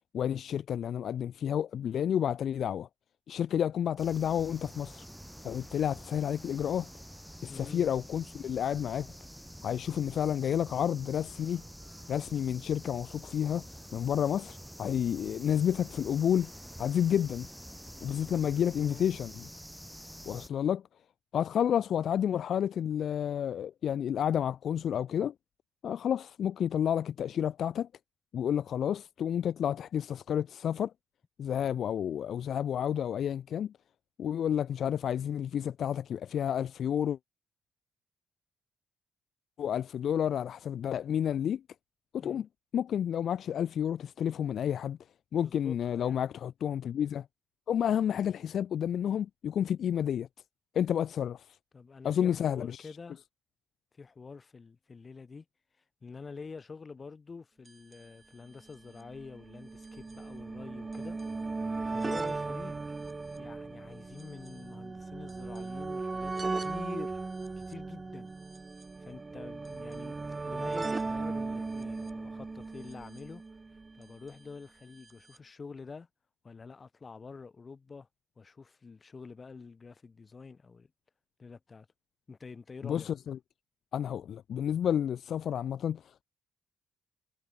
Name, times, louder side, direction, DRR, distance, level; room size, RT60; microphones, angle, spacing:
voice 1, 0.1-2.9 3.3-5.1 5.4-6.9 7.4-9.1 9.6-11.6 12.1-16.5 16.8-17.5 18.0-19.5 20.3-20.8 21.3-25.3 25.8-27.9 28.3-30.9 31.4-33.7 34.2-37.2 39.6-41.6 42.1-42.5 42.7-45.0 45.3-47.3 47.7-50.3 50.7-51.6 52.0-52.9 82.8-83.4 83.9-86.2, left 9 dB, 65° left, 0.5 m, -30 dB
sound 1, 4.0-20.5, equal, ahead, 4.4 m, -48 dB
voice 2, 7.5-7.9 18.3-19.1 42.2-42.5 45.4-46.2 51.7-53.2 54.0-55.4 56.0-61.2 61.9-62.8 63.4-67.2 67.6-68.3 69.0-70.2 70.5-73.4 73.9-76.1 76.4-78.1 78.4-80.9 81.4-81.9 82.3-83.1, left 4 dB, 35° left, 6.0 m, -47 dB
sound 2, 57.7-57.8 57.9-58.0 58.9-74.1 75.1-75.2 75.4-75.5, right 3 dB, 25° right, 1.3 m, -37 dB
cardioid pair, 90°, 0 cm